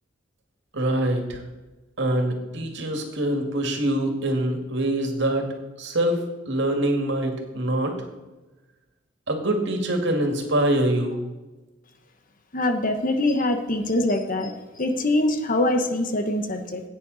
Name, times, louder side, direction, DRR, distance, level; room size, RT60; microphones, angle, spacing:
voice 1, 0.7-1.4 2.0-5.5 5.8-6.2 6.5-7.9 9.3-11.2, right 1 dB, 65° right, 4 dB, 2.3 m, -24 dB
voice 2, 12.5-14.5 14.8-16.8, left 1 dB, 45° left, 7 dB, 1.3 m, -23 dB
16.0 x 9.2 x 4.2 m, 1.1 s
head